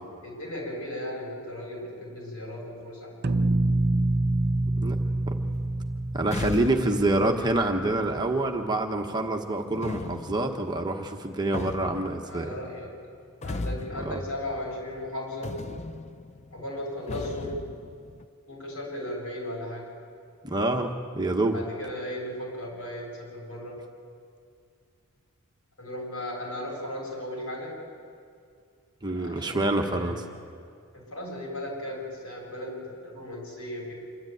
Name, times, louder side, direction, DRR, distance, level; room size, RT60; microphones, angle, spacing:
voice 1, 0.2-3.1 12.2-12.9 13.4-15.6 16.5-17.7 18.5-19.9 21.5-23.8 25.8-27.8 29.1-30.2 30.9-33.9, left 1 dB, 75° left, -2 dB, 7.8 m, -36 dB
sound 1, 3.2-8.1, right 2 dB, 50° right, 0.7 m, -27 dB
sound 2, 5.4-8.8 9.7-15.1 15.4-18.2, left 2 dB, 30° left, 0.5 m, -39 dB
voice 2, 6.1-12.5 13.9-14.2 20.4-21.6 29.0-30.2, right 2 dB, 20° right, 3 dB, 1.1 m, -27 dB
26.5 x 13.0 x 9.2 m, 2.3 s
head